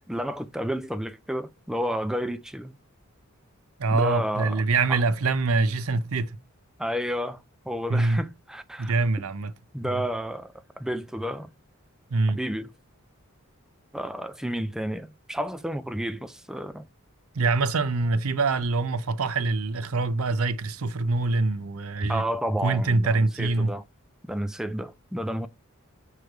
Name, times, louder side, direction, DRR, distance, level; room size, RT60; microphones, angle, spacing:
voice 1, 0.1-2.7 3.9-4.6 4.9-5.0 6.8-7.4 7.7-8.9 9.7-11.5 12.3-12.7 13.9-16.9 22.0-23.8 24.3-25.5, equal, ahead, 0.3 m, -31 dB
voice 2, 3.8-6.4 7.9-8.2 8.8-9.5 9.8-10.0 12.1-12.4 17.3-22.2 22.6-23.7, right 3 dB, 75° right, 0.6 m, -24 dB
6.4 x 3.2 x 4.5 m
head